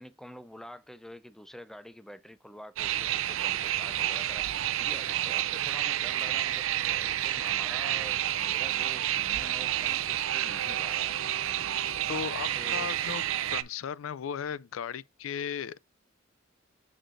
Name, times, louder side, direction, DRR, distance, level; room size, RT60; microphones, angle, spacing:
voice 1, 0.0-11.2 12.0-12.9, equal, ahead, 0.4 m, -47 dB
sound 1, 2.8-13.6, right 12 dB, 80° right, 0.5 m, -30 dB
voice 2, 12.1-13.2 13.5-15.8, left 7 dB, 85° left, 0.4 m, -36 dB
6.4 x 6.2 x 2.6 m
head